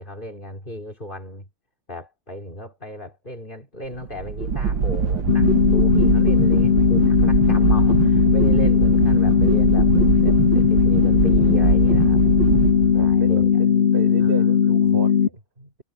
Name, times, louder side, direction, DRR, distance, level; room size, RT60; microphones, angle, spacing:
voice 1, 0.0-1.5 1.9-12.2 12.9-13.6 14.2-15.0, left 1 dB, 25° left, 5.0 m, -35 dB
sound 1, 3.9-13.4, right 5 dB, 60° right, 2.2 m, -22 dB
sound 2, 5.3-15.3, left 7 dB, 55° left, 0.7 m, -18 dB
voice 2, 6.5-7.1 12.2-12.4 12.9-15.8, right 3 dB, 25° right, 4.3 m, -35 dB
omnidirectional pair, 2.3 m